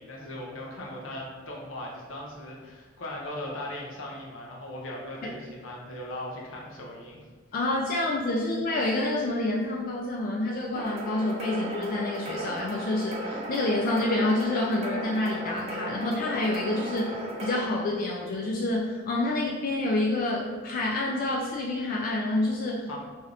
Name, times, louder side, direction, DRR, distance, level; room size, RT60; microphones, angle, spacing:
voice 1, 0.0-7.2 22.9-23.0, left 1 dB, 80° left, -2 dB, 0.7 m, -38 dB
voice 2, 7.5-22.9, left 2 dB, 45° left, -2 dB, 0.3 m, -28 dB
sound 1, 10.8-17.6, right 1 dB, 30° right, 0.4 m, -36 dB
2.6 x 2.4 x 3.2 m, 1.5 s
head